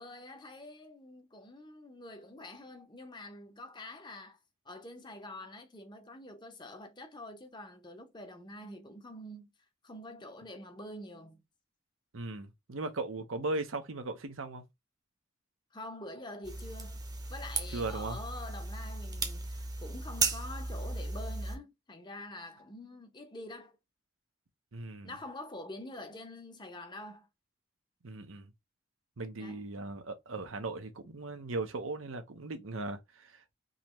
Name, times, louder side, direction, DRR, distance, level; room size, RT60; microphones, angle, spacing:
voice 1, 0.0-4.4 4.7-9.5 9.8-11.4 15.7-17.0 17.3-23.8 25.0-27.3 29.4-29.6, left 1 dB, 25° left, 0.8 m, -46 dB
voice 2, 12.1-14.6 17.7-18.2 24.7-25.2 28.0-28.5 29.2-33.5, right 2 dB, 90° right, 0.9 m, -38 dB
sound 1, 16.4-21.6, right 3 dB, 20° right, 0.7 m, -36 dB
3.9 x 2.9 x 3.0 m
head